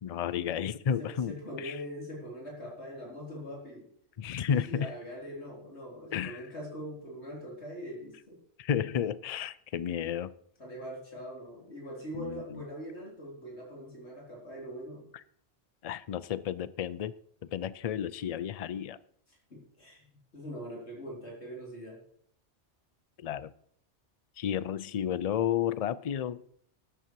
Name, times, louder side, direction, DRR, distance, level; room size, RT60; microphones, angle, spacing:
voice 1, 0.0-1.8 4.2-4.9 6.1-6.4 8.6-10.3 12.1-12.6 15.8-17.1 17.4-19.0 23.2-23.5 24.4-26.4, left 8 dB, 50° left, 18 dB, 0.5 m, -32 dB
voice 2, 1.0-3.9 4.6-8.4 10.6-15.1 19.5-20.1 20.3-22.0, equal, 75° left, -3 dB, 4.2 m, -42 dB
13.5 x 10.0 x 4.7 m, 0.64 s
omnidirectional pair, 1.2 m